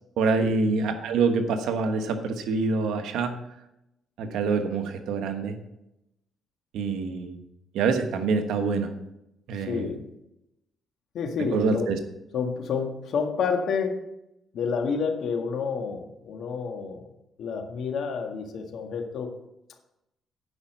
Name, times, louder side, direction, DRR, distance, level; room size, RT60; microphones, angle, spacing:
voice 1, 0.2-3.3 4.2-5.6 6.7-7.4 7.7-8.9 9.5-9.9 11.4-12.0, right 4 dB, 85° right, 6 dB, 1.2 m, -26 dB
voice 2, 9.7-10.0 11.1-11.9 12.3-14.0 14.5-17.1 17.4-19.3, left 5 dB, 70° left, 4 dB, 1.7 m, -29 dB
9.8 x 5.5 x 7.5 m, 0.86 s
cardioid pair, 90°, 0 cm